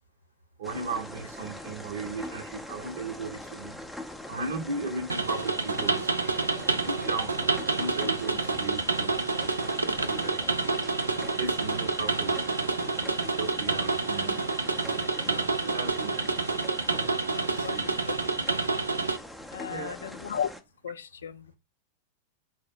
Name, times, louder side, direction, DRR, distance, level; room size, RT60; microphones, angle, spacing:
sound 1, 0.6-20.6, left 1 dB, ahead, 0.5 m, -42 dB
voice 1, 0.6-3.8 4.3-6.1 6.8-9.1 9.8-10.4 11.3-12.5 13.4-14.4 14.7-16.3 17.4-17.8 19.7-20.0, right 3 dB, 65° right, 0.8 m, -36 dB
sound 2, 5.1-19.2, right 3 dB, 80° right, 0.4 m, -28 dB
voice 2, 17.3-18.2 19.5-20.5 20.8-21.6, left 8 dB, 65° left, 0.3 m, -35 dB
4.6 x 2.1 x 4.3 m
figure-of-eight pair, 90°, 0 cm